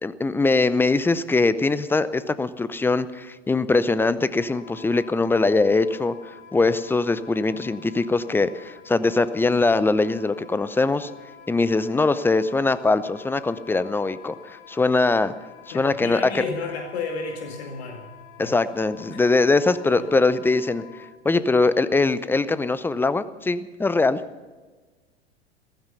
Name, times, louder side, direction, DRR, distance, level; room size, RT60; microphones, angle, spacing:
voice 1, 0.0-6.1 6.5-11.1 11.5-15.3 15.7-16.2 18.4-20.8 21.2-24.2, left 3 dB, 5° left, 15 dB, 0.6 m, -22 dB
Wind instrument woodwind instrument, 4.4-21.1, left 8 dB, 40° left, 3.4 m, -48 dB
voice 2, 15.7-18.1 18.4-18.6 19.1-19.3 19.8-20.1, left 4 dB, 70° left, 3 dB, 2.2 m, -32 dB
15.5 x 14.5 x 5.7 m, 1.3 s
hypercardioid pair, 95°, 33 cm